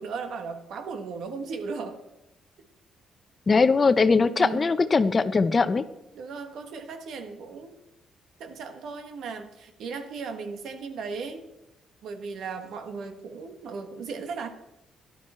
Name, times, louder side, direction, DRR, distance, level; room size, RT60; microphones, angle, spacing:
voice 1, 0.0-2.0 4.3-4.7 6.1-7.8 8.4-11.4 12.0-14.5, right 5 dB, 75° right, 7 dB, 1.5 m, -36 dB
voice 2, 3.5-5.8, left 4 dB, 35° left, 12 dB, 0.7 m, -21 dB
12.5 x 11.5 x 4.4 m, 0.91 s
cardioid pair, 90°, 0 cm